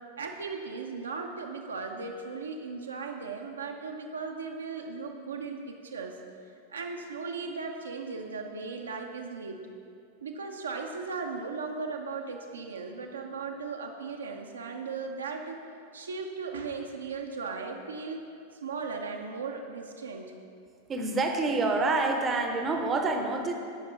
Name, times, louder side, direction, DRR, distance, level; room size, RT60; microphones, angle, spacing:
voice 1, 0.2-6.2 6.7-9.7 10.2-15.6 15.9-18.2 18.6-20.3, right 4 dB, 70° right, 2 dB, 0.5 m, -37 dB
voice 2, 20.9-23.5, right 3 dB, 20° right, 4 dB, 0.6 m, -27 dB
9.8 x 5.0 x 3.3 m, 2.4 s
figure-of-eight pair, 90°, 0 cm